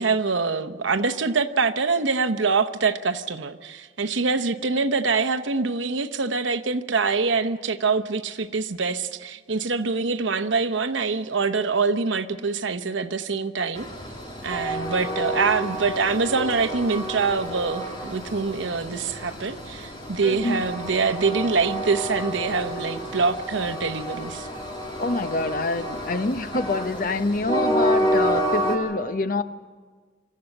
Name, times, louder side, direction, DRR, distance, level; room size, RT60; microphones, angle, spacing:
voice 1, 0.0-13.9 14.4-24.5, right 4 dB, 80° right, 0.9 m, -25 dB
Train, 13.8-28.8, equal, 25° left, 2.6 m, -29 dB
voice 2, 20.2-20.6 25.0-29.4, left 2 dB, 45° left, 0.7 m, -26 dB
25.5 x 14.0 x 7.9 m
head